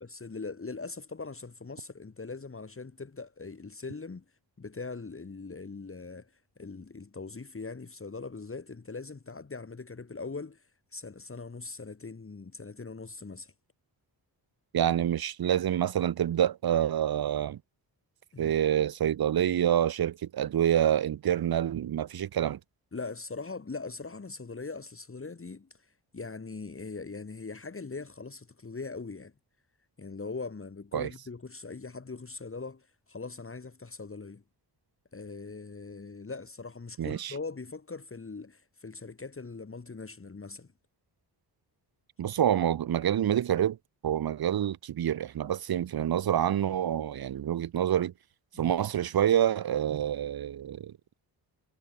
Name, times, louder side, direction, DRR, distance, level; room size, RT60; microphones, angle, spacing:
voice 1, 0.0-4.2 4.6-6.3 6.6-10.6 10.9-13.5 18.3-18.6 22.9-29.3 30.0-34.4 35.1-40.7 48.5-48.7, left 4 dB, 30° left, 3.6 m, -41 dB
voice 2, 14.7-17.6 18.4-22.6 30.9-31.1 37.0-37.3 42.2-43.8 44.0-48.1 48.6-50.9, right 10 dB, 60° right, 0.8 m, -27 dB
wide cardioid pair, 105°, 42 cm